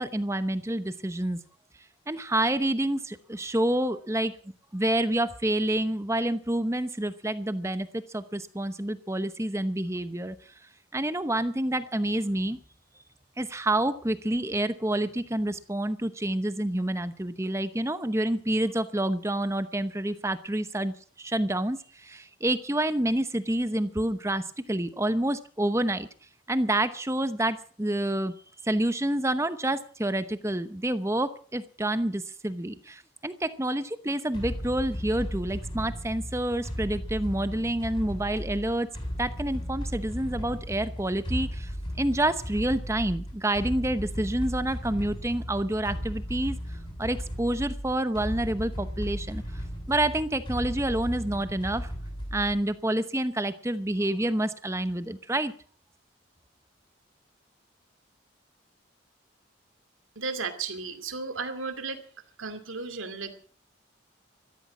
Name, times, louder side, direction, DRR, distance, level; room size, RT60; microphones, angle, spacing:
voice 1, 0.0-1.4 2.1-4.3 4.7-10.3 10.9-12.6 13.4-26.1 26.5-28.3 28.6-38.9 39.2-41.7 42.0-46.6 47.0-49.4 49.9-51.9 52.3-55.5, right 1 dB, 15° right, 12 dB, 0.8 m, -28 dB
sound 1, 34.3-52.7, equal, 25° left, 6.3 m, -36 dB
voice 2, 60.2-62.0 62.4-63.5, right 4 dB, 85° right, 9 dB, 2.4 m, -34 dB
14.5 x 14.0 x 6.1 m, 0.43 s
head